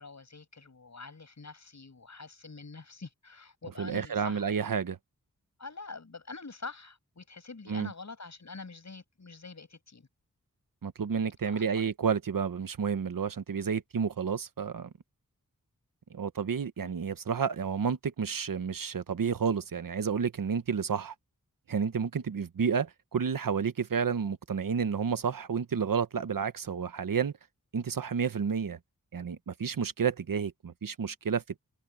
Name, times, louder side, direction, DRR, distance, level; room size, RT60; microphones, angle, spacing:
voice 1, 0.0-4.5 5.6-10.1 11.4-11.7, left 4 dB, 55° left, 6.8 m, -45 dB
voice 2, 3.8-5.0 7.7-7.9 10.8-14.9 16.1-21.1 21.7-27.3 27.7-28.8 29.1-31.4, right 6 dB, 80° right, 1.1 m, -30 dB
wide cardioid pair, 100°, 33 cm